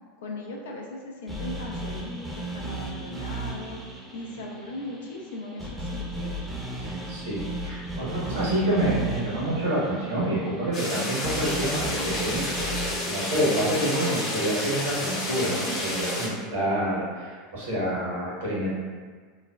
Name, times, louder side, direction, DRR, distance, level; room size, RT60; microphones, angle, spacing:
voice 1, 0.2-3.8 4.1-6.4, left 2 dB, 70° left, -1 dB, 0.4 m, -38 dB
sound 1, 1.3-15.4, right 1 dB, 5° right, 0.6 m, -36 dB
voice 2, 6.8-18.7, right 1 dB, 75° right, -8 dB, 1.2 m, -28 dB
sound 2, 10.7-16.3, left 1 dB, 45° left, 0.8 m, -30 dB
3.1 x 2.1 x 2.3 m, 1.5 s
figure-of-eight pair, 80°, 0 cm